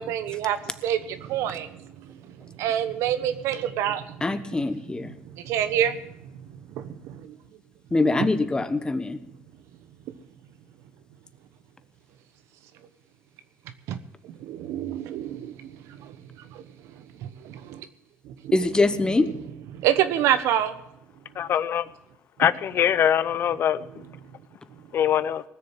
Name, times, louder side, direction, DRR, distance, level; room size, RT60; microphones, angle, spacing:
voice 1, 0.0-4.2 5.2-7.4 13.9-14.0 14.2-16.2 16.5-17.9 18.2-18.6 19.7-20.8, right 10 dB, 80° right, 1.1 m, -28 dB
voice 2, 4.2-5.1 7.9-9.2 18.5-19.3, left 3 dB, 15° left, 1.1 m, -23 dB
voice 3, 21.4-21.9 22.4-23.8 24.9-25.4, left 9 dB, 55° left, 0.6 m, -23 dB
19.5 x 6.8 x 7.5 m
cardioid pair, 105°, 5 cm